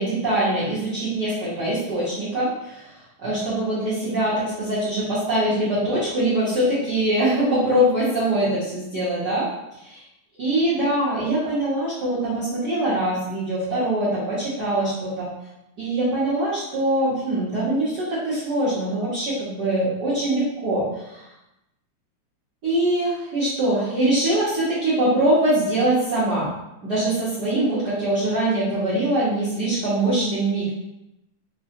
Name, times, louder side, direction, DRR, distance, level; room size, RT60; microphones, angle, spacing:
voice 1, 0.0-2.9 3.2-9.5 9.8-10.0 10.4-15.3 15.8-21.2 22.6-26.5 26.8-30.7, right 1 dB, 80° right, -11 dB, 0.9 m, -23 dB
5.0 x 2.1 x 2.8 m, 0.89 s
omnidirectional pair, 3.5 m